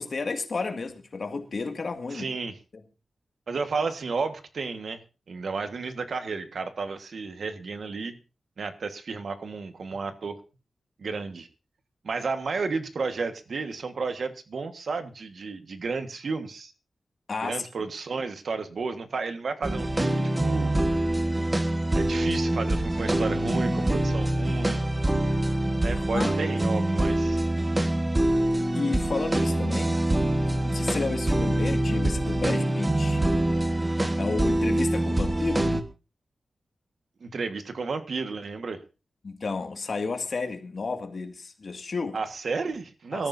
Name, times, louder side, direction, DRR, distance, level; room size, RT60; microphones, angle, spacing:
voice 1, 0.0-2.3 17.3-17.6 25.8-26.3 28.7-30.0 30.6-33.2 34.2-35.7 39.2-42.2 43.1-43.2, left 4 dB, 50° left, 2.1 m, -32 dB
voice 2, 2.1-2.6 3.5-5.0 5.3-8.2 8.6-10.4 11.0-11.5 12.0-16.7 17.4-20.7 21.9-24.8 25.8-27.4 37.2-38.8 42.1-43.3, right 4 dB, 65° right, 1.5 m, -32 dB
sound 1, 19.6-35.8, right 1 dB, 15° right, 1.4 m, -25 dB
24.0 x 14.0 x 2.7 m
wide cardioid pair, 170°, 0 cm